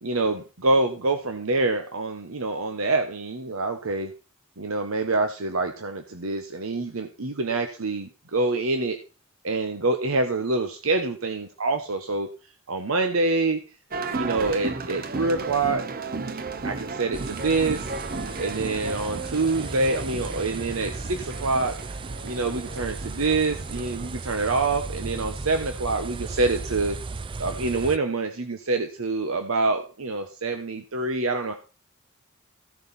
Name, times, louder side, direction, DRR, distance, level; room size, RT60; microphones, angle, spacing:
voice 1, 0.0-4.1 4.6-9.0 9.4-12.3 12.7-13.6 14.1-15.8 16.6-17.9 18.4-21.8 22.2-27.0 27.4-31.5, right 3 dB, 80° right, 7 dB, 1.1 m, -26 dB
sound 1, 13.9-24.6, right 3 dB, 45° right, 0.8 m, -35 dB
sound 2, 17.1-28.0, right 3 dB, 25° right, 0.4 m, -36 dB
15.5 x 6.9 x 4.2 m, 0.33 s
head